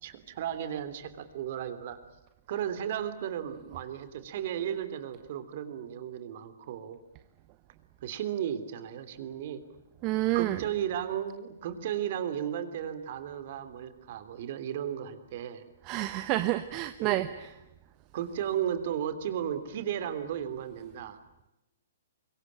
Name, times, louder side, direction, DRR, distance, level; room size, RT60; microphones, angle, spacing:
voice 1, 0.0-2.0 2.5-7.0 8.0-9.6 10.3-15.6 17.0-17.3 18.1-21.2, right 9 dB, 50° right, 11 dB, 3.2 m, -34 dB
voice 2, 10.0-10.6 15.9-17.3, right 16 dB, 35° right, 11 dB, 1.2 m, -28 dB
25.5 x 23.0 x 8.9 m, 0.91 s
figure-of-eight pair, 120°, 0 cm